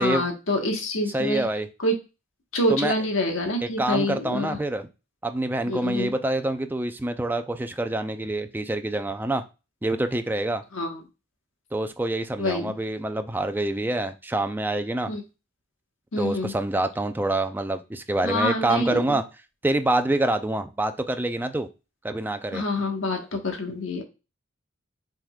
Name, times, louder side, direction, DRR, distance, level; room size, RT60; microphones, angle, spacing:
voice 1, 0.0-1.4 1.8-1.9 2.5-4.6 5.7-6.1 10.7-11.0 12.4-12.7 15.1-15.2 16.1-16.5 18.2-19.2 22.5-24.0, left 1 dB, 90° left, 2 dB, 1.3 m, -26 dB
voice 2, 1.1-1.7 2.7-2.9 3.6-4.9 5.2-9.4 9.8-10.6 11.7-15.1 16.2-19.2 19.6-21.7 22.0-22.6, right 2 dB, 10° right, 8 dB, 0.4 m, -26 dB
6.0 x 3.6 x 2.3 m, 0.29 s
head